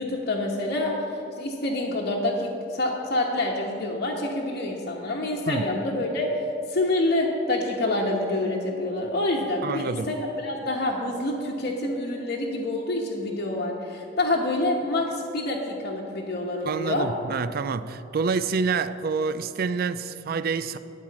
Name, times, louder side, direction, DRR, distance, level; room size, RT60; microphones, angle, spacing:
voice 1, 0.0-6.3 6.7-17.1, left 2 dB, 50° left, 1.1 m, -27 dB
voice 2, 9.6-10.2 16.7-20.8, right 5 dB, 50° right, 0.4 m, -27 dB
13.0 x 4.6 x 8.6 m
head